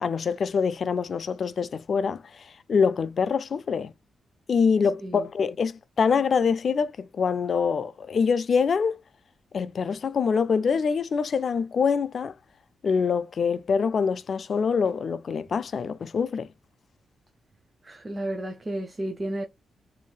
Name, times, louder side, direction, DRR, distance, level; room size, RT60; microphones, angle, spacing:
voice 1, 0.0-3.9 4.5-9.0 9.5-12.3 12.8-16.5, left 6 dB, 50° left, 0.3 m, -25 dB
voice 2, 17.8-19.4, right 1 dB, 25° right, 0.5 m, -32 dB
3.1 x 2.7 x 2.2 m
cardioid pair, 120°, 0 cm